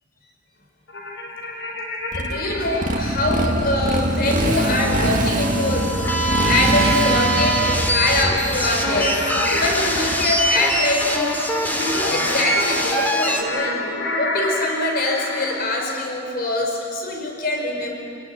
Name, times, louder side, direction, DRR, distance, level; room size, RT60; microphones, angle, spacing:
sound 1, 0.9-3.0 4.6-15.7, left 2 dB, 70° left, 4.5 m, -29 dB
Motorcycle, 2.1-10.7, right 1 dB, 40° right, 1.6 m, -24 dB
voice 1, 2.2-9.2 9.5-13.9 14.2-17.9, left 2 dB, 50° left, 1 dB, 4.8 m, -24 dB
sound 2, 4.2-13.4, right 1 dB, 10° left, 2.6 m, -24 dB
28.0 x 17.5 x 9.6 m, 2.4 s
head